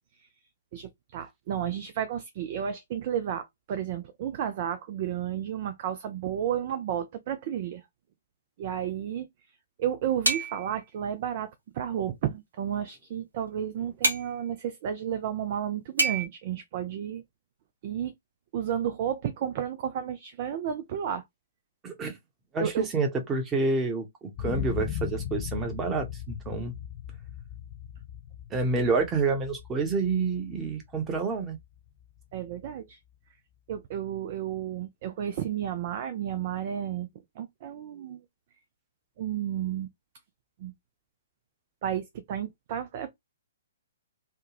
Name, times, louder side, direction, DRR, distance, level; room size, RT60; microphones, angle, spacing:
voice 1, 0.7-7.8 8.6-9.3 9.8-17.2 17.8-18.1 18.5-21.2 22.6-22.9 32.3-33.0 33.7-37.1 37.4-38.2 39.2-39.9 40.6-40.7 41.8-43.1, right 9 dB, 45° right, 0.5 m, -32 dB
sound 1, 10.2-10.7 14.0-14.3 16.0-16.3, right 2 dB, 85° right, 1.1 m, -26 dB
voice 2, 21.8-22.2 22.5-26.7 28.5-31.6, right 4 dB, 20° right, 1.0 m, -28 dB
sound 2, 24.3-32.2 32.7-32.8, left 10 dB, 40° left, 0.5 m, -38 dB
3.5 x 2.3 x 2.9 m
figure-of-eight pair, 125°, 0 cm